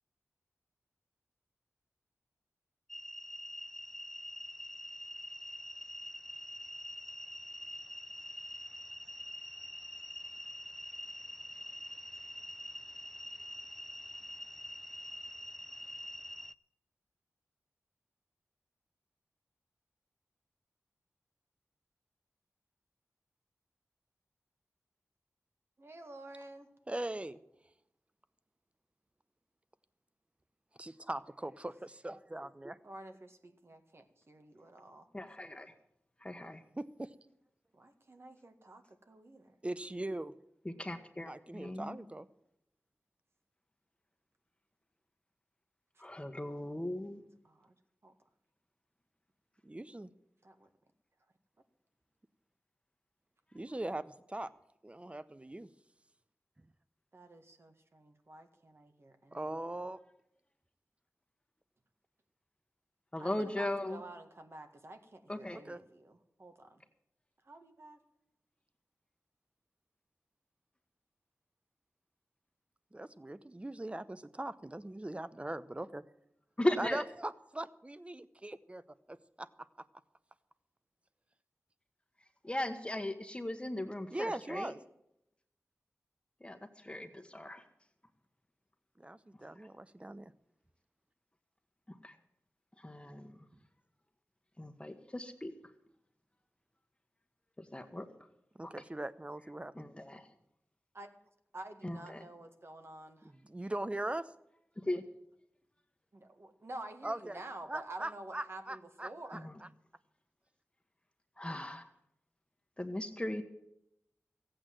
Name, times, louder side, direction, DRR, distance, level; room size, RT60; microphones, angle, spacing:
sound 1, 2.9-16.5, left 1 dB, 5° left, 0.5 m, -45 dB
voice 1, 25.8-26.7 32.8-35.1 37.7-39.5 47.4-47.7 48.0-48.1 50.4-50.7 57.1-59.5 63.2-66.8 67.5-68.0 100.9-101.1 101.5-103.3 106.1-109.5, right 2 dB, 55° right, 6 dB, 1.8 m, -50 dB
voice 2, 26.9-27.4 30.8-32.8 36.8-37.1 39.6-40.3 41.3-42.3 49.6-50.1 53.5-54.5 54.8-55.7 59.3-60.0 65.7-65.8 72.9-76.0 76.8-78.8 79.1-79.5 84.1-84.8 89.0-90.3 98.5-99.8 103.2-104.3 107.0-107.4 107.7-109.7, right 1 dB, 25° right, 15 dB, 0.8 m, -40 dB
voice 3, 35.1-35.7 36.2-36.6 40.6-42.0 46.0-47.2 63.1-64.0 65.3-65.6 76.6-77.0 82.4-84.7 86.4-87.6 91.9-92.1 92.8-93.4 94.6-95.5 97.6-98.1 98.6-98.7 99.8-100.3 101.8-102.2 104.8-105.0 109.3-109.5 111.4-111.9 112.8-113.4, left 1 dB, 20° left, 6 dB, 1.3 m, -38 dB
15.0 x 8.6 x 7.7 m, 0.80 s
wide cardioid pair, 50°, 5 cm